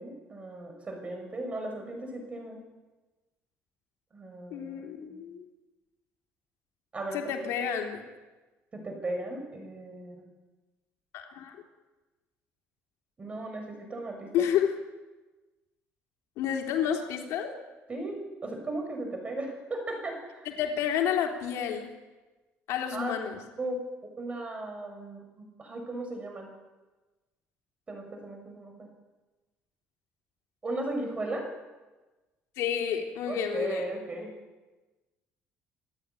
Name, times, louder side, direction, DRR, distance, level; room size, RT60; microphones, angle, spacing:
voice 1, 0.0-2.6 4.1-5.2 6.9-7.5 8.7-10.2 13.2-14.4 17.9-20.5 22.9-23.1 23.6-23.8 24.2-26.5 27.9-28.9 30.6-31.5 33.3-34.3, right 2 dB, 25° right, 4 dB, 6.7 m, -36 dB
voice 2, 4.5-5.4 7.1-8.0 11.1-11.6 14.3-14.7 16.4-17.5 20.6-21.9 22.7-23.4 32.6-33.8, left 9 dB, 80° left, 2 dB, 3.4 m, -30 dB
27.0 x 12.0 x 9.9 m, 1.2 s
cardioid pair, 145°, 5 cm